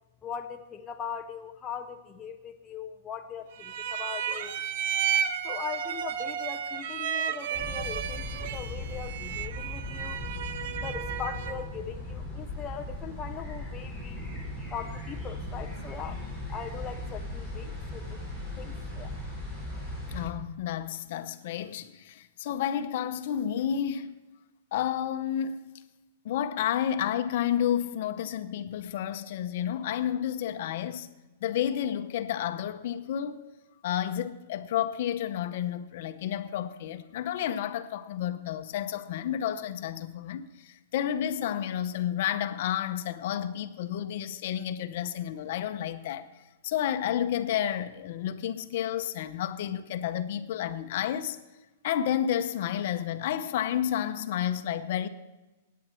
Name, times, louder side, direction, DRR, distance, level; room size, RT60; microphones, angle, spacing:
voice 1, 0.2-4.6 5.4-10.2 10.8-14.3 14.7-16.2 16.5-18.3 18.6-19.1, left 8 dB, 15° left, 0.4 m, -40 dB
sound 1, 3.6-11.7, right 8 dB, 45° right, 0.6 m, -33 dB
sound 2, 7.5-20.2, left 1 dB, 5° right, 4.7 m, -38 dB
voice 2, 20.1-24.2 24.7-25.7 26.2-31.1 31.4-33.4 33.8-46.3 46.6-51.4 51.8-55.1, left 10 dB, 45° left, 0.7 m, -31 dB
16.5 x 9.4 x 4.4 m
supercardioid pair, 175°, 0 cm